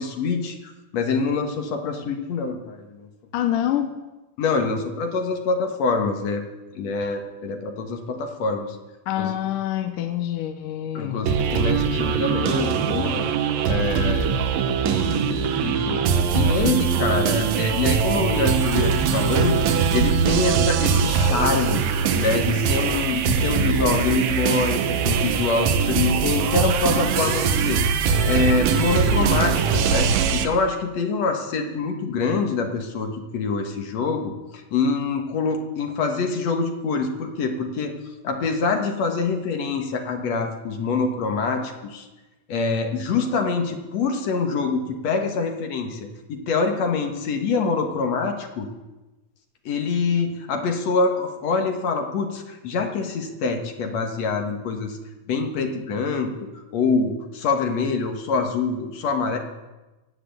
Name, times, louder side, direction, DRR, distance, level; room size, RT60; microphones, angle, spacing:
voice 1, 0.0-3.1 4.4-6.4 6.7-8.8 9.2-9.4 10.9-13.3 13.7-14.3 14.8-16.0 16.3-21.8 22.1-34.3 34.7-37.9 38.2-42.1 42.5-48.7 49.7-55.0 55.3-59.4, left 4 dB, 55° left, 4 dB, 2.4 m, -25 dB
voice 2, 3.3-3.9 9.1-11.3, left 11 dB, 75° left, 6 dB, 2.4 m, -26 dB
sound 1, 11.3-30.5, right 6 dB, 85° right, 2.8 m, -22 dB
17.5 x 8.0 x 7.8 m, 1.1 s
omnidirectional pair, 3.9 m